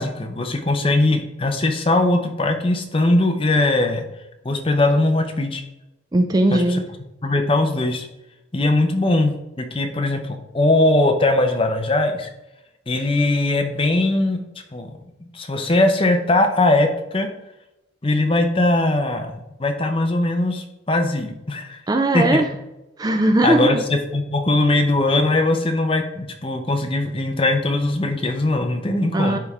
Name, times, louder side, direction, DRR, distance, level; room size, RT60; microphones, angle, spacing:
voice 1, 0.0-4.0 4.4-5.6 6.5-6.6 7.2-8.1 8.5-12.3 12.9-14.4 14.7-14.9 15.2-17.3 18.0-21.8 22.1-22.4 23.4-29.4, left 2 dB, 25° left, 5 dB, 0.7 m, -20 dB
voice 2, 6.1-6.9 21.9-22.5 23.0-23.8 29.1-29.4, right 1 dB, 20° right, 6 dB, 0.3 m, -18 dB
10.5 x 3.5 x 3.6 m, 0.95 s
head